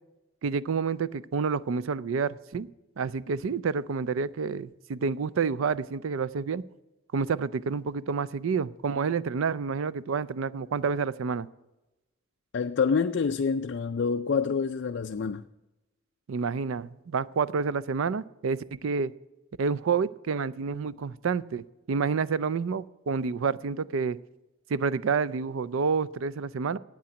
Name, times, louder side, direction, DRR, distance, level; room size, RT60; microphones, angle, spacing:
voice 1, 0.4-2.7 3.0-6.6 7.1-11.5 16.3-19.1 19.6-24.2 24.7-26.8, right 5 dB, 90° right, 0.4 m, -29 dB
voice 2, 12.5-15.5, left 5 dB, 60° left, 0.4 m, -27 dB
8.9 x 8.6 x 8.9 m
head